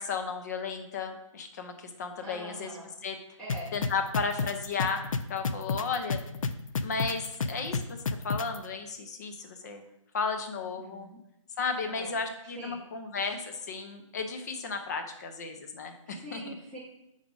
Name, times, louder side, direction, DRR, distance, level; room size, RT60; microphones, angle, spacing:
voice 1, 0.0-2.8 3.0-3.2 3.7-5.0 5.3-6.2 6.8-9.8 10.1-11.1 11.6-16.6, left 5 dB, 30° left, 6 dB, 0.6 m, -34 dB
voice 2, 2.2-2.9 3.4-3.7 10.5-11.2 11.8-12.8 16.1-16.8, right 1 dB, 5° left, -8 dB, 0.8 m, -44 dB
sound 1, 3.5-8.6, left 4 dB, 75° left, 0.4 m, -30 dB
5.0 x 4.0 x 4.7 m, 0.84 s
figure-of-eight pair, 155°, 17 cm